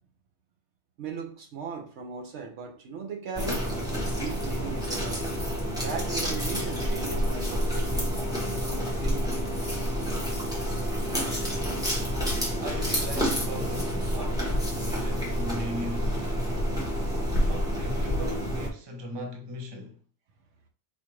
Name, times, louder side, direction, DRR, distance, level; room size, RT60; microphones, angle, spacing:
voice 1, 1.0-3.8 4.2-5.4 5.8-8.1 8.6-9.5 11.5-11.6, right 5 dB, 70° right, 0.9 m, -38 dB
sound 1, 3.3-18.7, equal, 5° right, 0.9 m, -28 dB
voice 2, 11.1-11.8 12.6-16.4 17.4-20.0, equal, 25° right, 0.6 m, -39 dB
4.3 x 2.4 x 3.0 m
omnidirectional pair, 1.3 m